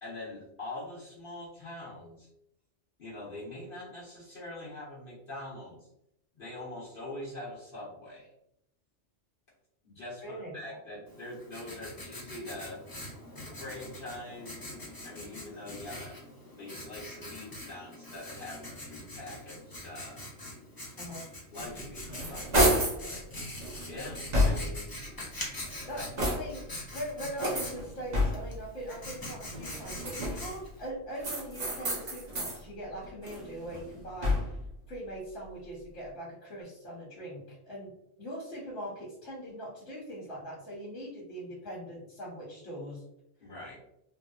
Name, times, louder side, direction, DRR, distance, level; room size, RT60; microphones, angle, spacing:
voice 1, 0.0-2.3 3.0-5.9 6.4-8.3 9.8-12.8 13.6-14.6 15.0-16.2 16.5-20.2 21.5-23.3 23.9-24.9 26.0-26.1 43.4-43.8, left 1 dB, 50° left, -8 dB, 1.2 m, -43 dB
voice 2, 10.2-10.8 21.0-21.3 25.9-34.4 34.9-37.9 38.2-43.0, equal, 90° left, -8 dB, 1.4 m, -41 dB
Writing, 11.1-30.9, left 1 dB, 25° left, 0.6 m, -44 dB
sound 1, 21.7-23.0 23.6-24.9 25.5-26.7 27.4-28.6 29.5-30.6 31.2-32.6 33.0-34.7, equal, 40° right, 0.8 m, -30 dB
3.3 x 2.7 x 2.3 m, 0.80 s
omnidirectional pair, 1.2 m